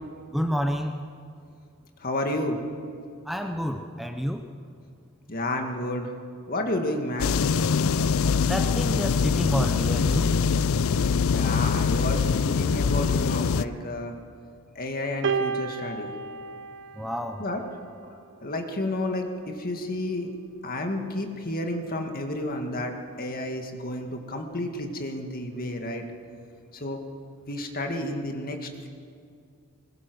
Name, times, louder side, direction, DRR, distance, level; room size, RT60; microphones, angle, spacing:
voice 1, 0.3-1.0 3.3-4.4 8.4-10.3 17.0-17.4, equal, ahead, 5 dB, 0.7 m, -28 dB
voice 2, 2.0-2.6 5.3-6.1 6.5-7.4 11.3-14.1 14.8-16.1 17.4-17.6 18.4-20.3 20.6-26.0 26.7-27.0 27.5-28.9, left 1 dB, 40° left, 4 dB, 2.0 m, -31 dB
sound 1, 7.2-13.6, left 5 dB, 65° left, 0.4 m, -23 dB
sound 2, 15.2-17.7 18.7-18.9, right 5 dB, 55° right, 1.0 m, -31 dB
20.5 x 20.5 x 6.3 m, 2.3 s
head